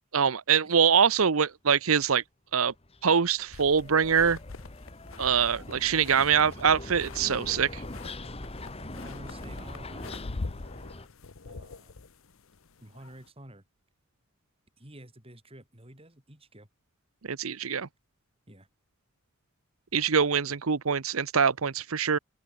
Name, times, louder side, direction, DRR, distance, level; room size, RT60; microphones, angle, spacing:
voice 1, 0.1-2.2 2.5-2.7 3.0-4.4 5.2-7.8 17.2-17.9 19.9-22.2, right 6 dB, 90° right, 0.8 m, -24 dB
sound 1, 2.7-11.1, left 2 dB, 30° left, 1.8 m, -42 dB
sound 2, 3.5-13.3, left 3 dB, 75° left, 0.9 m, -44 dB
voice 2, 8.8-10.7 11.4-12.0 12.8-13.6 14.8-16.7 18.5-18.7, right 1 dB, 30° right, 4.5 m, -49 dB
open air
head